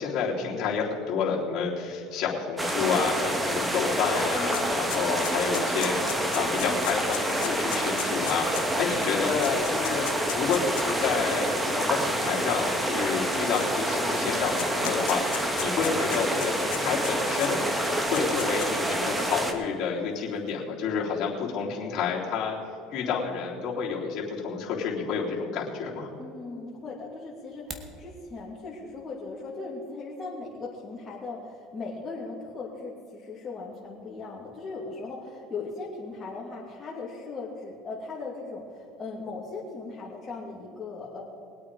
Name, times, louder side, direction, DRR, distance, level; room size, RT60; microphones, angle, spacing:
voice 1, 0.0-17.7 18.1-22.6 22.9-26.1, left 6 dB, 50° left, -5 dB, 3.7 m, -29 dB
sound 1, 2.6-19.5, right 1 dB, 15° right, 1.7 m, -27 dB
sound 2, 3.7-3.8 4.0-11.0 11.8-11.9 12.9-14.0 14.3-17.5 17.9-18.9, left 15 dB, 85° left, 0.9 m, -37 dB
voice 2, 4.3-4.7 26.2-41.2, left 3 dB, 25° left, -7 dB, 3.0 m, -38 dB
sound 3, 27.4-28.0, right 3 dB, 30° right, 1.8 m, -41 dB
22.0 x 8.6 x 5.0 m, 2.7 s
supercardioid pair, 110°, 0 cm